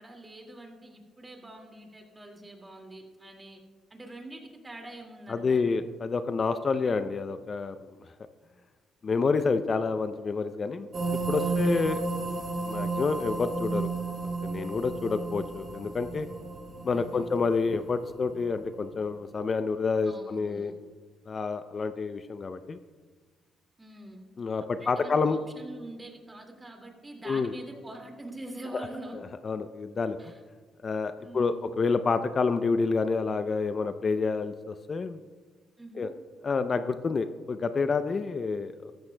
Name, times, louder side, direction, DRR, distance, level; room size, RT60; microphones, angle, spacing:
voice 1, 0.0-3.6 3.9-5.8 11.4-11.9 16.9-17.3 20.0-20.7 23.8-24.3 24.7-29.2 30.2-30.4 31.2-31.7 35.8-36.2, right 1 dB, 20° right, 3 dB, 2.1 m, -45 dB
voice 2, 5.3-7.8 9.0-10.9 11.3-12.0 12.6-13.9 14.2-16.3 16.8-20.7 21.3-22.8 24.4-25.4 27.3-27.5 29.4-30.2 30.8-35.2 35.9-36.1 36.4-38.9, left 4 dB, 40° left, 10 dB, 0.5 m, -28 dB
sound 1, 10.9-18.7, right 3 dB, 45° right, 1.6 m, -33 dB
14.0 x 13.5 x 2.2 m, 1.5 s
cardioid pair, 90°, 0 cm